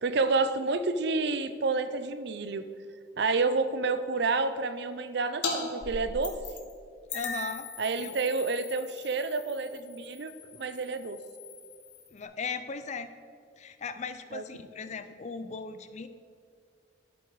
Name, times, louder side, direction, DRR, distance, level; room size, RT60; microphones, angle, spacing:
voice 1, 0.0-2.7 3.2-6.3 7.8-11.2 14.3-14.4, right 3 dB, 65° right, 12 dB, 0.6 m, -29 dB
sound 1, 5.4-5.6 5.8-6.7 7.1-12.2, left 4 dB, 75° left, 1.6 m, -39 dB
voice 2, 7.1-7.7 8.0-8.1 12.1-13.1 13.6-16.1, left 5 dB, 40° left, 11 dB, 0.4 m, -37 dB
11.5 x 7.9 x 4.7 m, 2.1 s
head